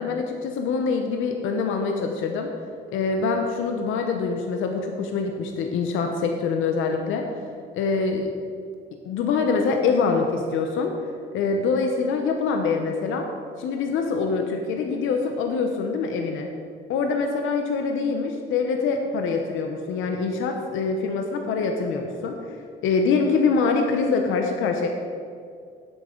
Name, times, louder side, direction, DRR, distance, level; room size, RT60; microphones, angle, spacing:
voice 1, 0.0-2.5 2.9-7.3 7.7-8.3 9.1-11.0 11.3-13.3 13.6-16.5 16.9-22.6 22.8-24.9, left 4 dB, 85° left, 3 dB, 0.8 m, -24 dB
10.0 x 8.1 x 3.8 m, 2.3 s
cardioid pair, 90°, 20 cm